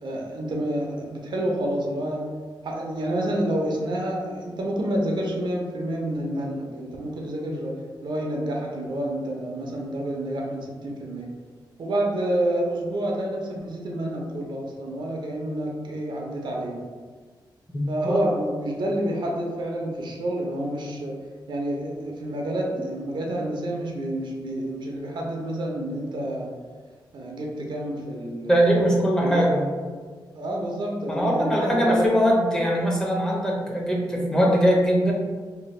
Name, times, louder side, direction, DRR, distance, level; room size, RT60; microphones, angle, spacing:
voice 1, 0.0-2.3 2.6-11.3 11.8-16.9 17.9-21.2 21.5-26.5 27.1-29.7 30.3-32.1, right 1 dB, 65° right, -1 dB, 0.5 m, -29 dB
voice 2, 17.7-18.2 28.5-29.6 31.1-35.1, equal, 10° left, -3 dB, 0.5 m, -21 dB
2.6 x 2.1 x 3.1 m, 1.5 s
wide cardioid pair, 105°, 8 cm